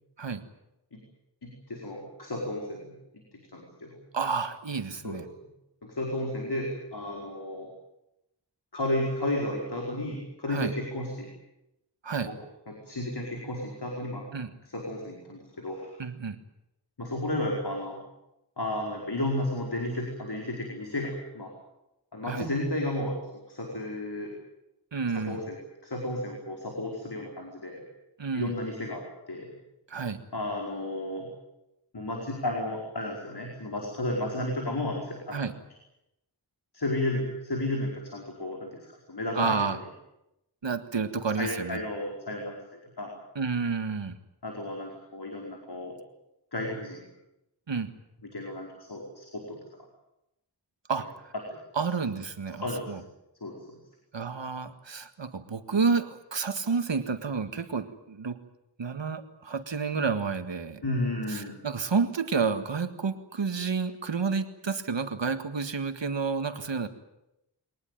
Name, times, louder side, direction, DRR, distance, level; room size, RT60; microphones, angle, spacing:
voice 1, 1.4-2.9 3.5-3.9 5.0-5.2 5.8-7.7 8.7-11.3 12.2-12.3 12.7-14.2 14.6-16.0 17.0-18.0 18.6-21.5 22.1-23.2 23.5-24.3 25.1-25.6 25.8-27.8 28.3-29.0 29.3-29.5 30.3-31.3 31.9-35.5 36.7-38.8 39.1-39.8 41.4-42.5 43.0-43.1 44.4-45.9 46.5-47.1 48.2-49.6 52.6-52.9 53.4-53.5 60.8-61.5, left 1 dB, 60° left, 0 dB, 4.9 m, -32 dB
voice 2, 4.1-5.2 10.5-10.7 12.0-12.3 14.3-14.5 16.0-16.4 22.3-22.5 24.9-25.4 28.2-28.5 29.9-30.2 35.3-35.5 39.3-39.8 40.6-41.8 43.4-44.2 47.7-47.9 50.9-51.3 51.8-53.0 54.1-58.4 58.8-60.8 61.3-66.9, right 5 dB, 85° right, 9 dB, 1.8 m, -30 dB
23.5 x 19.0 x 9.3 m, 0.87 s
wide cardioid pair, 75°, 43 cm